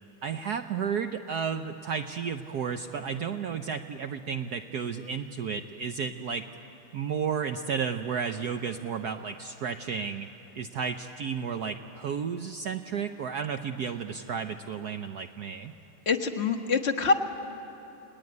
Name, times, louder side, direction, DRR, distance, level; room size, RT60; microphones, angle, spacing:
voice 1, 0.2-6.4 6.9-10.3 10.5-15.7, right 6 dB, 65° right, 7 dB, 1.0 m, -32 dB
voice 2, 16.0-17.1, left 4 dB, 35° left, 4 dB, 1.5 m, -25 dB
30.0 x 19.0 x 9.6 m, 3.0 s
omnidirectional pair, 2.4 m